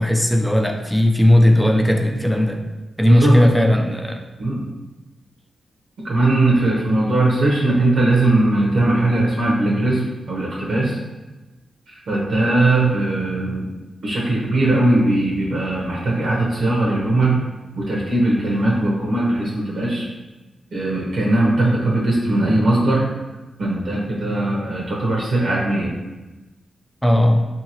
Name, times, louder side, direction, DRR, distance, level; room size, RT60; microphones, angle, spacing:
voice 1, 0.0-2.6 3.0-4.2 27.0-27.5, left 1 dB, 5° left, 3 dB, 0.4 m, -16 dB
voice 2, 6.0-10.0 10.3-11.0 11.9-13.7 14.0-17.5 17.8-20.1 20.7-23.0 23.6-26.0, right 2 dB, 75° right, -4 dB, 0.8 m, -19 dB
2.8 x 2.8 x 2.8 m, 1.1 s
cardioid pair, 60°, 0 cm